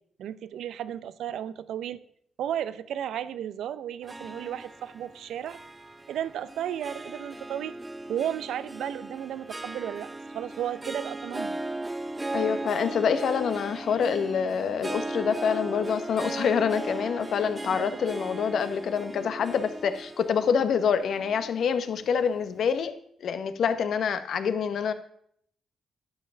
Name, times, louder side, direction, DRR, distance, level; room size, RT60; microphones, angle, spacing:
voice 1, 0.2-2.0 2.4-5.6 6.1-7.7 8.1-11.6 17.7-18.0, right 10 dB, 80° right, 16 dB, 0.5 m, -34 dB
Harp, 4.0-22.5, right 2 dB, 20° right, 0.5 m, -37 dB
voice 2, 12.3-22.9 23.2-24.9, left 7 dB, 70° left, 11 dB, 1.0 m, -26 dB
10.5 x 5.5 x 6.9 m, 0.67 s
cardioid pair, 75°, 0 cm